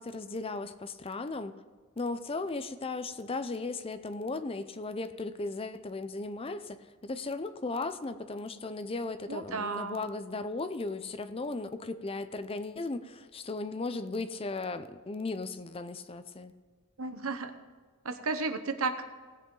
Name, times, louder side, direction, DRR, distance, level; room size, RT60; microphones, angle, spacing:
voice 1, 0.0-1.5 2.0-6.8 7.0-16.5, left 3 dB, 25° left, 11 dB, 0.5 m, -36 dB
voice 2, 9.3-10.0 17.0-17.5 18.0-19.0, right 4 dB, 90° right, 8 dB, 1.0 m, -33 dB
18.0 x 8.0 x 3.9 m, 1.5 s
head